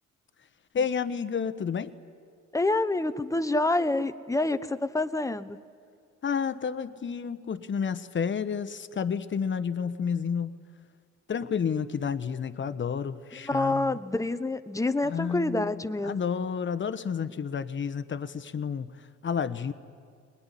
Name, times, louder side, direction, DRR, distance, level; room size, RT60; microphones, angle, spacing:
voice 1, 0.7-1.9 6.2-10.5 11.3-14.0 15.0-18.9 19.2-19.7, left 6 dB, 40° left, 12 dB, 1.1 m, -30 dB
voice 2, 2.5-5.6 13.4-16.2, left 2 dB, 10° left, 11 dB, 1.0 m, -27 dB
21.0 x 21.0 x 10.0 m, 2.1 s
cardioid pair, 90°, 30 cm